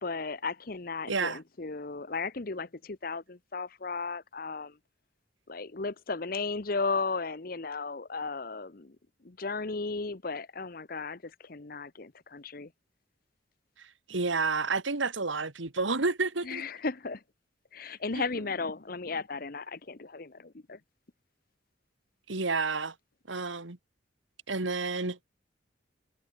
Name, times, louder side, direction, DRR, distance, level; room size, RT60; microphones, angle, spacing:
voice 1, 0.0-4.8 5.5-9.0 9.2-12.7 16.4-17.2 17.7-20.8, left 4 dB, 50° left, 0.9 m, -35 dB
voice 2, 1.1-1.4 14.1-16.6 18.2-18.3 22.3-22.9 23.3-23.8 24.5-25.2, right 3 dB, 85° right, 2.0 m, -30 dB
head